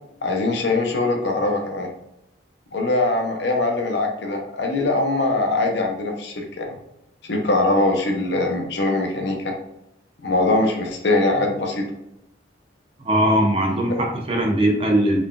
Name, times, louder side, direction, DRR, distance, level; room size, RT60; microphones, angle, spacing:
voice 1, 0.2-1.9 2.7-6.7 7.2-9.5 10.2-11.8 13.9-14.0, left 2 dB, 60° left, 2 dB, 0.7 m, -22 dB
voice 2, 13.0-15.3, right 1 dB, 30° right, 2 dB, 0.6 m, -20 dB
3.8 x 3.4 x 2.3 m, 0.83 s
head